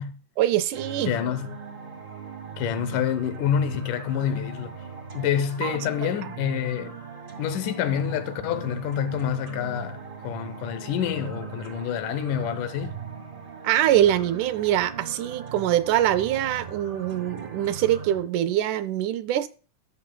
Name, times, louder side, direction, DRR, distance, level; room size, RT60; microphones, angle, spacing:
voice 1, 0.4-1.1 5.6-6.1 13.6-19.5, right 12 dB, 80° right, 2.1 m, -24 dB
sound 1, 0.7-18.2, right 5 dB, 25° right, 1.7 m, -39 dB
voice 2, 1.1-1.5 2.6-4.8 5.1-7.0 7.4-13.0, left 9 dB, 85° left, 2.3 m, -27 dB
15.0 x 6.8 x 2.2 m
omnidirectional pair, 3.6 m